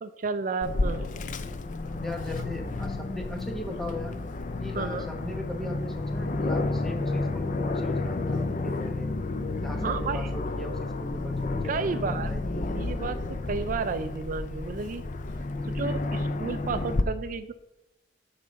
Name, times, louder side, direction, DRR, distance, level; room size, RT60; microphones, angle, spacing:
voice 1, 0.0-1.1 4.7-5.1 9.8-10.3 11.7-12.3 12.7-15.0 15.6-17.5, right 4 dB, 50° right, 10 dB, 0.4 m, -32 dB
Aircraft, 0.6-17.0, left 2 dB, 45° left, 0.5 m, -31 dB
voice 2, 1.8-4.2 4.6-9.1 9.6-12.7, left 1 dB, ahead, 2 dB, 1.1 m, -39 dB
8.9 x 3.9 x 6.4 m, 0.93 s
head